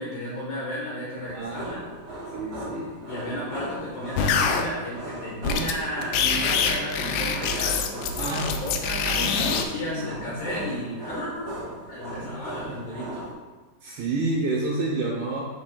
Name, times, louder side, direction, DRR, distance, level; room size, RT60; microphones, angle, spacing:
voice 1, 0.0-1.8 3.1-11.6 11.9-13.3, equal, 70° left, -6 dB, 2.2 m, -33 dB
sound 1, 1.2-13.3, equal, 50° right, 1.5 m, -37 dB
voice 2, 1.3-1.8 2.3-3.0 8.2-8.6 9.1-9.5 9.8-10.0 12.1-12.4 12.7-12.8 13.8-15.4, right 2 dB, 75° right, -4 dB, 2.4 m, -29 dB
sound 2, 4.2-4.6 5.4-5.7 6.0-9.7, left 6 dB, 85° left, 2.6 m, -25 dB
12.0 x 4.5 x 2.2 m, 1.3 s
omnidirectional pair, 5.4 m